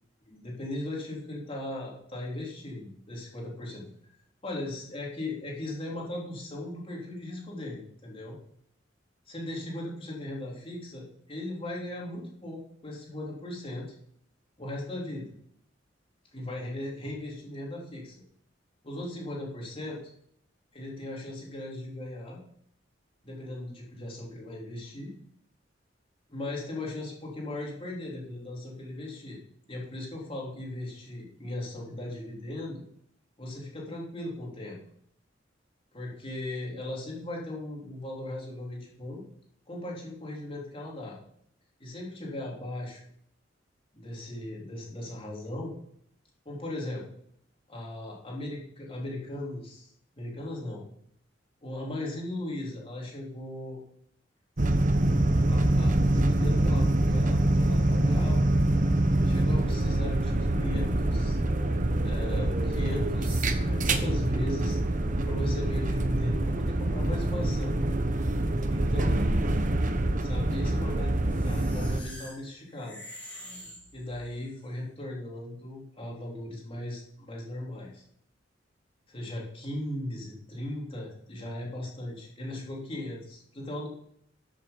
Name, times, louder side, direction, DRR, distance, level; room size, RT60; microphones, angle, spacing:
voice 1, 0.3-3.8 4.4-8.4 9.3-13.9 14.6-15.3 16.3-18.2 18.8-20.0 20.7-22.4 23.2-25.1 26.3-29.4 29.7-32.8 33.4-34.8 35.9-39.2 39.7-41.2 41.8-43.0 43.9-45.7 46.5-47.0 47.7-49.9 50.2-50.8 51.6-53.8 55.5-58.5 59.2-61.4 62.0-64.8 65.2-67.8 68.7-69.5 70.2-73.0 73.9-78.0 79.1-83.9, left 1 dB, 30° left, -3 dB, 3.8 m, -38 dB
sound 1, 54.6-72.0, right 1 dB, 45° right, 1.1 m, -25 dB
sound 2, 71.3-74.5, equal, 10° left, 4.7 m, -46 dB
14.0 x 7.7 x 5.4 m, 0.69 s
head